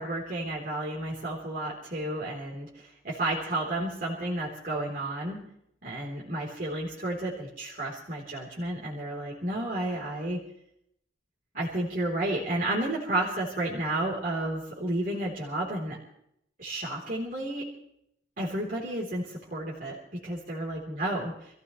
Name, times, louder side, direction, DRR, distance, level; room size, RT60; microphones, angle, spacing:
voice 1, 0.0-5.4 5.8-10.4 11.5-16.0 16.6-17.7 18.4-21.6, right 1 dB, 50° right, -4 dB, 3.7 m, -32 dB
27.5 x 15.5 x 3.2 m, 0.73 s
head